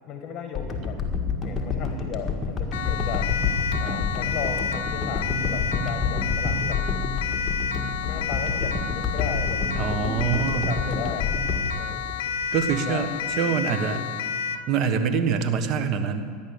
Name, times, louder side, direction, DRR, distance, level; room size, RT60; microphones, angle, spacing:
voice 1, 0.1-1.0 1.4-3.3 3.8-6.8 8.0-10.0 10.4-11.3 11.7-12.0 12.8-13.1 13.4-14.0, left 7 dB, 40° left, 4 dB, 1.6 m, -36 dB
sound 1, 0.5-12.8 13.3-13.4, left 4 dB, 20° left, 1.8 m, -28 dB
Siren, 2.7-14.7, left 6 dB, 75° left, 0.7 m, -30 dB
voice 2, 9.8-10.7 12.5-13.1 13.4-14.0 14.7-16.2, right 7 dB, 50° right, 8 dB, 1.3 m, -24 dB
14.0 x 10.5 x 6.9 m, 2.1 s
supercardioid pair, 115°, 0 cm